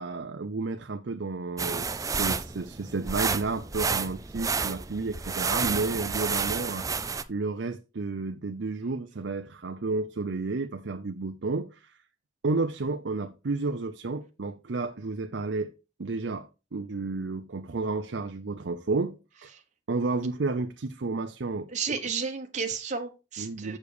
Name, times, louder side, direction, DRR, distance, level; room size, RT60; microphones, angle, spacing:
voice 1, 0.0-6.9 7.3-11.9 12.4-15.7 16.0-19.2 19.4-19.5 19.9-22.0 23.4-23.8, right 3 dB, 65° right, 0.6 m, -31 dB
sound 1, 1.6-7.2, right 5 dB, 20° right, 0.5 m, -30 dB
voice 2, 21.7-23.8, right 5 dB, 40° right, 1.2 m, -32 dB
6.9 x 6.7 x 4.9 m
head